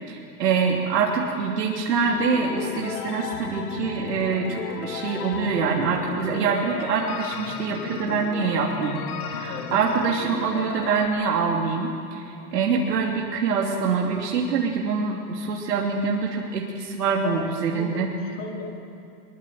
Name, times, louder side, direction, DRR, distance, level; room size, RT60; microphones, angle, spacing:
voice 1, 0.1-18.1, right 5 dB, 85° right, -2 dB, 3.1 m, -25 dB
sound 1, 2.0-11.1, left 8 dB, 70° left, 2.1 m, -34 dB
voice 2, 9.4-9.7 17.2-17.4 17.7-18.7, left 5 dB, 45° left, 0 dB, 4.4 m, -36 dB
22.0 x 21.5 x 7.8 m, 2.5 s
hypercardioid pair, 145°, 47 cm